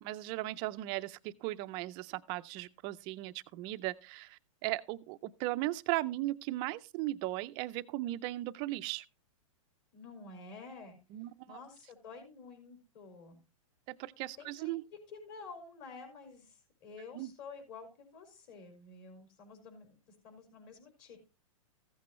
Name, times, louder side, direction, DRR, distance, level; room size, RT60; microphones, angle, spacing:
voice 1, 0.0-9.0 11.1-11.6 13.9-14.8 17.1-17.3, right 17 dB, 25° right, 0.5 m, -37 dB
voice 2, 9.9-11.0 11.5-13.4 14.4-14.8 15.1-21.2, left 4 dB, 40° left, 5.1 m, -50 dB
15.0 x 8.3 x 3.1 m
hypercardioid pair, 155°, 18 cm